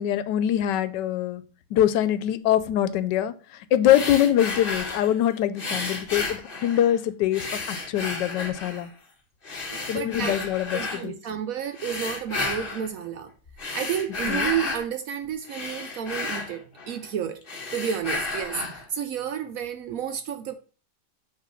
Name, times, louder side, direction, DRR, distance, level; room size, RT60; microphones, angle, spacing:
voice 1, 0.0-1.4 1.7-8.9 9.9-11.1 14.3-14.5, left 11 dB, 85° left, 1.2 m, -24 dB
sound 1, 3.8-5.2 5.6-7.0 7.3-8.9 9.4-11.0 11.7-12.9 13.5-14.9 15.3-17.1 17.4-18.9, left 3 dB, 35° left, 1.1 m, -32 dB
voice 2, 9.7-10.4 10.7-13.3 13.7-17.4 17.7-20.5, right 9 dB, 70° right, 0.8 m, -31 dB
6.0 x 3.1 x 5.6 m
omnidirectional pair, 1.8 m